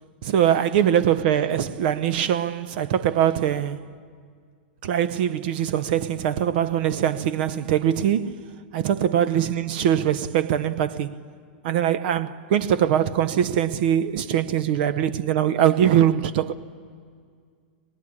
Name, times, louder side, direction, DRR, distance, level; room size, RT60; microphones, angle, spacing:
voice 1, 0.2-3.9 4.8-11.2 11.6-16.5, right 10 dB, 60° right, 0.9 m, -22 dB
24.0 x 19.0 x 9.8 m
hypercardioid pair, 130°, 6 cm